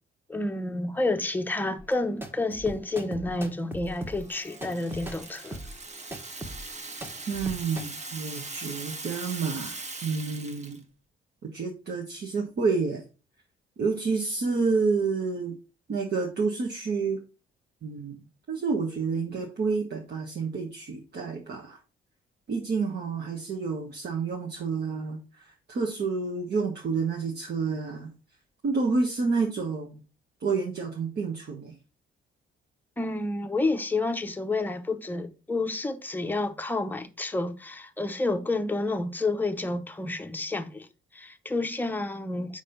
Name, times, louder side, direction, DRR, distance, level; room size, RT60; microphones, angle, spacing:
voice 1, 0.3-5.6 33.0-40.9 41.1-42.6, left 2 dB, 10° left, 0.7 m, -29 dB
sound 1, 1.8-7.9, right 1 dB, 10° right, 1.3 m, -40 dB
Rattle (instrument), 3.9-10.8, right 3 dB, 35° right, 1.2 m, -40 dB
voice 2, 7.3-10.8 11.4-13.0 13.8-15.6 15.9-17.2 17.8-18.2 18.5-21.8 22.5-28.1 28.6-30.0 30.4-31.7, right 4 dB, 55° right, 1.3 m, -29 dB
5.1 x 4.2 x 5.2 m
cardioid pair, 90°, 20 cm